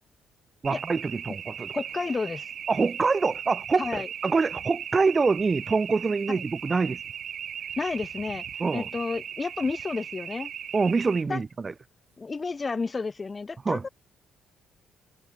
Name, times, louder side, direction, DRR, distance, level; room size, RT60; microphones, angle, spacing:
voice 1, 0.6-1.7 2.7-7.0 8.6-8.9 10.7-11.7 13.7-13.9, right 4 dB, 30° right, 2.2 m, -25 dB
sound 1, 0.6-11.2, right 9 dB, 60° right, 5.9 m, -38 dB
voice 2, 1.7-2.5 3.8-4.1 6.3-6.4 7.8-8.4 8.7-10.5 11.3-11.4 12.2-13.9, left 4 dB, 30° left, 2.2 m, -31 dB
cardioid pair, 90°, 0 cm